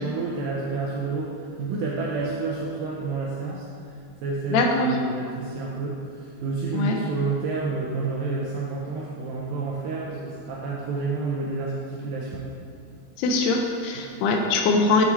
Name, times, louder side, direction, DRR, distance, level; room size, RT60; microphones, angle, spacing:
voice 1, 0.0-12.5 14.0-14.1, right 3 dB, 90° right, -4 dB, 2.1 m, -29 dB
voice 2, 4.5-5.0 6.7-7.0 13.2-15.1, left 3 dB, 80° left, 2 dB, 2.5 m, -22 dB
7.2 x 7.1 x 3.2 m, 2.3 s
omnidirectional pair, 4.8 m